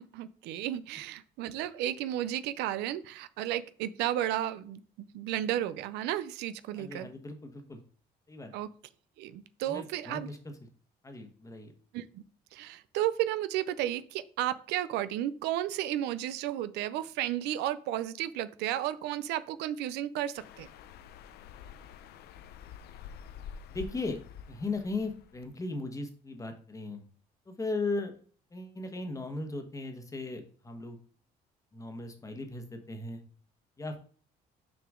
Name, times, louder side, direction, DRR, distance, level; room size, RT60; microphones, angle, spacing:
voice 1, 0.0-7.1 8.5-8.7 9.2-10.3 11.9-12.2 12.5-20.7, right 12 dB, 85° right, 14 dB, 0.5 m, -33 dB
voice 2, 6.8-7.8 8.3-8.5 9.6-10.6 11.0-11.7 23.7-24.2 24.5-27.0 27.5-28.1 28.5-31.0 31.7-33.2 33.8-34.0, left 3 dB, 20° left, 6 dB, 1.2 m, -37 dB
sound 1, 20.4-25.5, left 7 dB, 75° left, 0.6 m, -48 dB
6.2 x 4.9 x 3.6 m, 0.43 s
cardioid pair, 110°, 17 cm